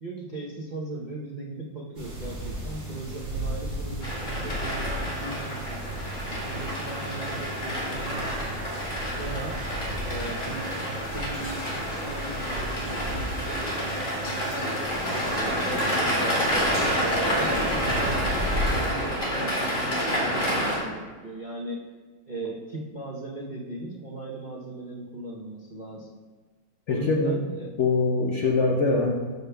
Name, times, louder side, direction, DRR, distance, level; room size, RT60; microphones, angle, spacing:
voice 1, 0.0-6.0 6.5-8.6 9.1-9.6 10.0-16.5 17.0-21.8 22.3-26.1 26.9-27.7, right 2 dB, 65° right, -4 dB, 0.4 m, -38 dB
sound 1, 2.0-18.9, equal, 40° right, 2.3 m, -35 dB
sound 2, 4.0-20.8, equal, 40° left, 2.6 m, -29 dB
sound 3, 10.3-12.1 12.4-12.5 13.1-13.2 13.7-17.5, left 2 dB, 60° left, 3.0 m, -46 dB
voice 2, 26.9-27.4 27.8-29.1, left 3 dB, 85° left, 1 dB, 0.6 m, -23 dB
13.5 x 6.6 x 2.2 m, 1.4 s
omnidirectional pair, 2.1 m